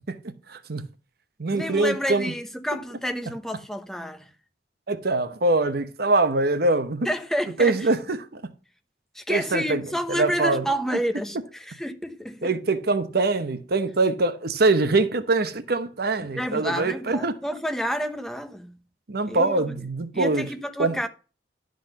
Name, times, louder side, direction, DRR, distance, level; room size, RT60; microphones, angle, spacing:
voice 1, 0.1-0.9 1.4-2.3 4.9-7.1 7.6-8.5 9.3-9.8 10.1-10.7 12.4-17.4 19.1-20.5 20.8-21.0, right 3 dB, 60° right, 0.9 m, -23 dB
voice 2, 1.5-4.3 7.0-7.9 9.1-12.5 16.2-18.8 19.3-19.8 20.1-21.1, equal, 5° left, 1.0 m, -29 dB
12.0 x 4.0 x 6.5 m
head